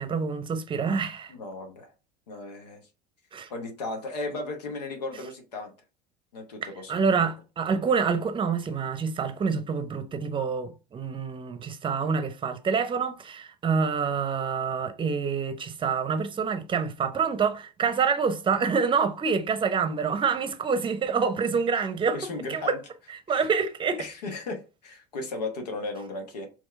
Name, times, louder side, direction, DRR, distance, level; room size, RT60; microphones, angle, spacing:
voice 1, 0.0-1.3 3.3-3.5 6.9-22.2 22.5-22.8 23.3-24.0, right 5 dB, 25° right, 0.7 m, -27 dB
voice 2, 1.3-1.9 2.3-2.8 3.5-5.7 6.3-7.3 22.1-22.8 23.3-23.5 24.0-26.5, left 2 dB, 75° left, 1.0 m, -36 dB
4.5 x 3.0 x 3.3 m
figure-of-eight pair, 70°, 21 cm